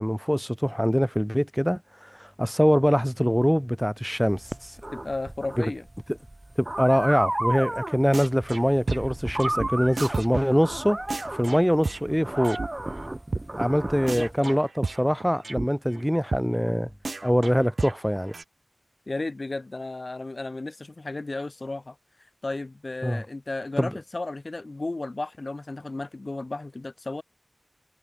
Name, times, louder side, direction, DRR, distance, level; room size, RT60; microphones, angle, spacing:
voice 1, 0.0-4.4 6.6-11.0 11.3-12.6 13.6-16.9 17.2-18.3 23.0-23.2 23.8-23.9, equal, ahead, 0.7 m, -23 dB
sound 1, 4.3-14.4, right 1 dB, 25° right, 2.2 m, -33 dB
voice 2, 4.9-5.9 14.2-14.6 19.1-21.9 22.4-27.2, left 2 dB, 50° left, 1.6 m, -34 dB
sound 2, 8.1-8.6 8.9-12.7 13.0-13.1 13.3-13.4 13.7-13.8 14.1-15.7 15.9-16.0 16.3-16.4 16.7-16.8 17.0-18.4, right 3 dB, 70° right, 0.6 m, -32 dB
wide cardioid pair, 75°, 0 cm